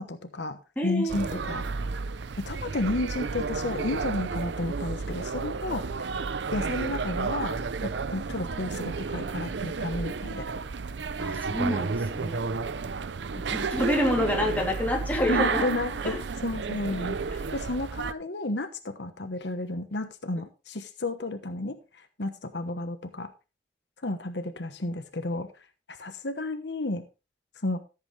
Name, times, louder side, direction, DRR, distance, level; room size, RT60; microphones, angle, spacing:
voice 1, 0.0-1.7 2.4-6.1 6.5-10.5 15.3-16.2 16.4-21.8 22.2-23.3 24.0-25.5 25.9-27.0 27.6-27.8, left 2 dB, 80° left, 8 dB, 1.2 m, -32 dB
voice 2, 0.8-1.3 11.2-12.4 13.3-15.7 16.0-16.2 16.8-16.9, left 1 dB, 10° left, -1 dB, 3.1 m, -28 dB
sound 1, 1.1-18.1, right 4 dB, 90° right, 0.6 m, -32 dB
14.5 x 8.1 x 3.3 m, 0.30 s
head